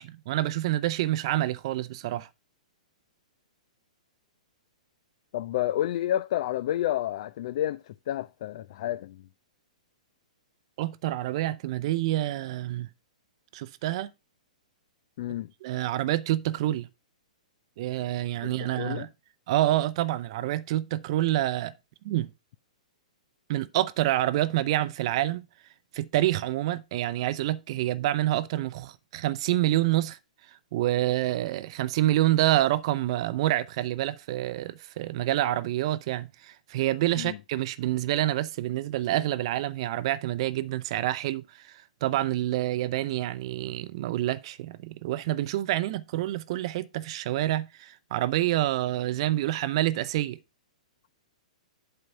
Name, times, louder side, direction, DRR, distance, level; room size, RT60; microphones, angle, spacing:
voice 1, 0.0-2.3 10.8-12.9 13.5-14.1 15.6-16.9 17.8-19.1 19.5-21.7 22.0-22.3 23.5-25.5 25.9-30.2 30.5-50.4, right 14 dB, 50° right, 0.6 m, -27 dB
voice 2, 5.3-9.2 15.2-15.5 18.4-18.5 18.8-19.1 37.2-37.4, left 12 dB, 50° left, 0.4 m, -30 dB
7.9 x 3.9 x 5.5 m
figure-of-eight pair, 115°, 4 cm